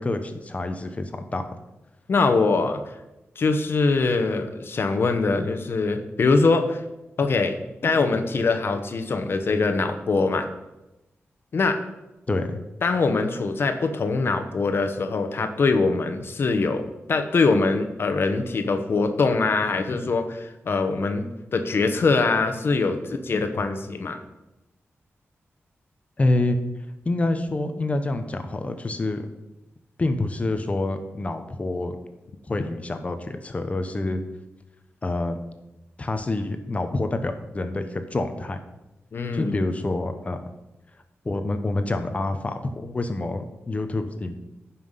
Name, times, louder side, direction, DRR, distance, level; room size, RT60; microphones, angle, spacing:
voice 1, 0.0-1.4 12.3-12.6 26.2-26.6 27.0-29.3 30.0-32.0 32.5-34.2 35.0-35.4 36.0-38.6 39.3-40.4 41.2-44.4, left 2 dB, 30° left, 8 dB, 0.9 m, -27 dB
voice 2, 2.1-2.8 3.4-6.8 7.2-10.5 11.5-11.8 12.8-21.2 21.5-24.2 39.1-39.5, left 3 dB, 55° left, 6 dB, 1.1 m, -23 dB
15.0 x 5.8 x 5.7 m, 0.98 s
wide cardioid pair, 155°, 5 cm